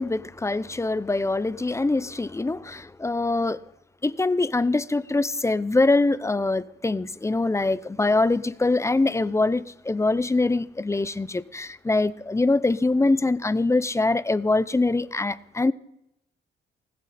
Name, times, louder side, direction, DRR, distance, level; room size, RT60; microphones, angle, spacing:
voice 1, 0.0-3.6 4.0-15.7, left 2 dB, 15° left, 0.6 m, -23 dB
19.5 x 14.5 x 4.2 m
cardioid pair, 90°, 20 cm